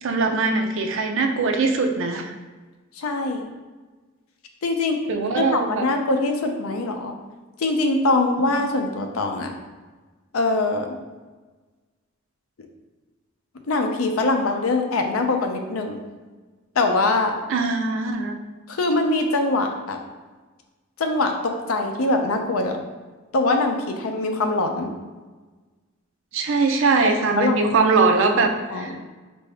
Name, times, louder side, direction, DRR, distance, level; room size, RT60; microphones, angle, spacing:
voice 1, 0.0-2.3 5.1-5.9 17.5-18.4 26.3-29.0, right 4 dB, 65° right, 5 dB, 0.4 m, -21 dB
voice 2, 3.0-3.5 4.6-5.0 5.5-7.1 7.6-9.5 10.3-10.9 13.7-16.0 16.8-17.3 18.7-20.0 21.0-22.8 23.3-24.9 27.4-27.6 28.7-29.0, left 2 dB, 80° left, 4 dB, 0.5 m, -23 dB
4.5 x 2.6 x 3.4 m, 1.3 s
head